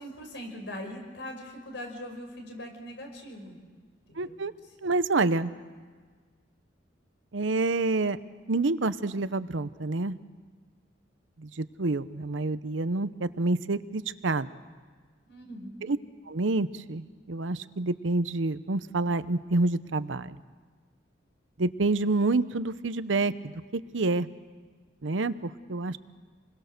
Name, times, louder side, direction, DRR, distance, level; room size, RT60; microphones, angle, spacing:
voice 1, 0.0-3.6 4.1-4.4 15.3-16.0, equal, 65° left, 3 dB, 5.5 m, -41 dB
voice 2, 4.2-4.5 4.8-5.5 7.3-8.2 8.5-10.2 11.4-14.5 15.8-16.0 16.3-20.4 21.6-23.5 23.9-24.3 25.0-26.0, right 3 dB, 85° right, 14 dB, 0.8 m, -28 dB
28.0 x 21.5 x 6.7 m, 1.5 s
head